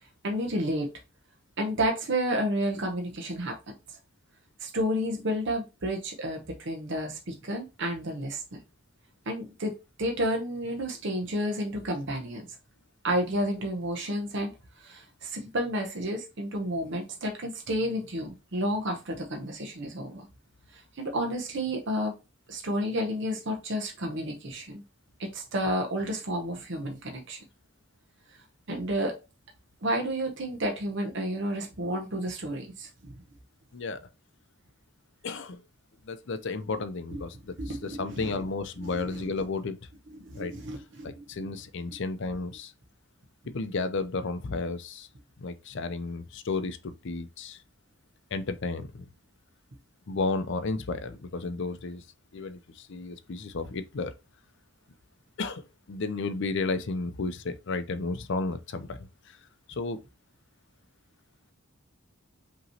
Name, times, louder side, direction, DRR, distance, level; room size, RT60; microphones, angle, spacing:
voice 1, 0.2-0.9 1.6-3.6 4.6-8.4 9.3-9.7 10.0-12.5 13.0-14.5 14.8-20.3 21.0-22.1 22.5-24.8 25.2-27.4 28.7-29.1 29.8-33.1 37.1-37.2 37.6-38.4 39.1-39.3 40.2-41.5, equal, 55° right, 0.8 m, -31 dB
voice 2, 33.7-34.1 35.2-35.6 36.1-39.8 40.3-40.5 41.0-42.7 43.5-45.1 45.4-47.6 48.3-49.1 50.1-52.0 52.3-54.1 55.4-55.6 55.9-59.0 59.3-59.4 59.7-60.0, left 3 dB, 55° left, 0.5 m, -33 dB
5.3 x 3.0 x 2.8 m
head